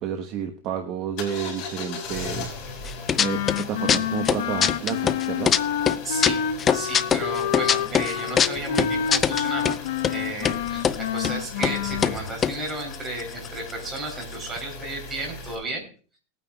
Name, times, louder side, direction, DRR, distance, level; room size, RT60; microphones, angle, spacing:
voice 1, 0.0-5.5, right 8 dB, 35° right, 5 dB, 1.1 m, -31 dB
sound 1, 1.2-15.5, left 4 dB, 40° left, 4.9 m, -38 dB
sound 2, 2.9-3.6 3.9-5.6 5.9-9.8 10.0-10.1 10.4-11.0 11.2-11.3 11.6-11.8 12.0-13.7 14.0-14.1 14.2-14.6, left 7 dB, 20° left, 0.4 m, -22 dB
Wind instrument woodwind instrument, 3.2-12.2, left 9 dB, 75° left, 0.9 m, -28 dB
voice 2, 6.0-6.4 6.7-9.8 10.0-15.9, right 2 dB, 15° right, 1 dB, 3.8 m, -33 dB
20.0 x 9.2 x 2.3 m, 0.39 s
supercardioid pair, 160°, 0 cm